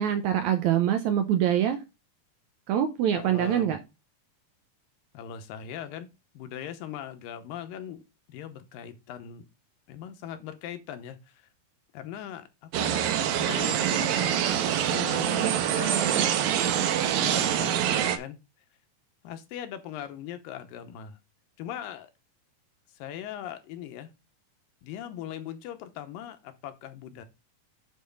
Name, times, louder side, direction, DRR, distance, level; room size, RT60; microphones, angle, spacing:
voice 1, 0.0-1.8 2.7-3.8, right 10 dB, 75° right, 7 dB, 1.8 m, -24 dB
voice 2, 3.2-3.8 5.1-6.1 6.3-8.0 8.3-9.5 9.9-11.5 11.9-13.1 13.4-16.4 17.0-18.4 19.2-21.2 21.6-22.1 23.0-24.1 24.8-27.2, left 10 dB, 80° left, 9 dB, 2.6 m, -40 dB
sound 1, 12.7-18.2, right 10 dB, 90° right, 2.8 m, -25 dB
9.4 x 4.1 x 5.3 m, 0.26 s
omnidirectional pair, 4.1 m